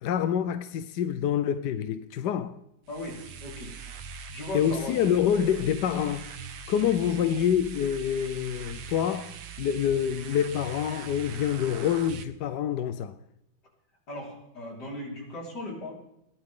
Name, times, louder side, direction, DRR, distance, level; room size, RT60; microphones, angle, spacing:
voice 1, 0.0-2.6 4.5-6.3 6.7-13.2, left 9 dB, 65° left, 1.1 m, -27 dB
sound 1, 2.8-12.2, right 6 dB, 75° right, 1.9 m, -42 dB
voice 2, 2.9-3.7 4.3-5.0 14.1-15.9, left 1 dB, 50° left, 5.2 m, -37 dB
21.0 x 15.5 x 3.8 m
omnidirectional pair, 2.3 m